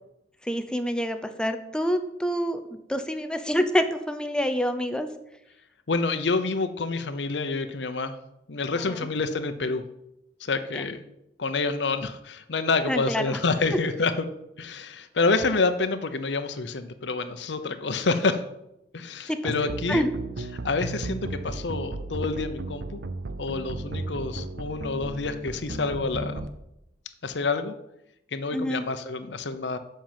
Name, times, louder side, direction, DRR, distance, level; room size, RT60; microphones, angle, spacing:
voice 1, 0.4-2.6 2.9-5.1 8.9-9.1 12.9-13.4 19.3-19.5 19.9-20.1 28.5-28.8, equal, 5° left, 8 dB, 0.7 m, -27 dB
voice 2, 5.9-8.1 8.5-9.8 10.4-11.0 11.4-14.3 14.6-18.4 18.9-20.0 20.6-23.0 23.4-26.5 27.2-27.8 28.3-29.8, left 3 dB, 80° left, 9 dB, 0.8 m, -28 dB
sound 1, 19.5-26.5, right 2 dB, 70° right, 0.7 m, -35 dB
7.7 x 5.7 x 7.4 m, 0.85 s
head